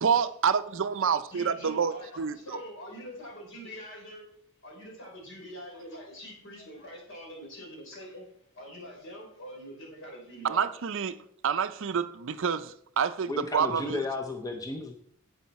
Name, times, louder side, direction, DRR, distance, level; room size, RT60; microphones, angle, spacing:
voice 1, 0.0-2.6 10.4-11.2 11.4-14.0, right 6 dB, 60° right, 0.5 m, -28 dB
voice 2, 1.3-4.3 4.6-8.3 8.5-10.7, equal, 60° left, 3.7 m, -44 dB
voice 3, 13.3-14.9, left 3 dB, 15° left, 0.7 m, -33 dB
10.5 x 7.9 x 4.2 m
head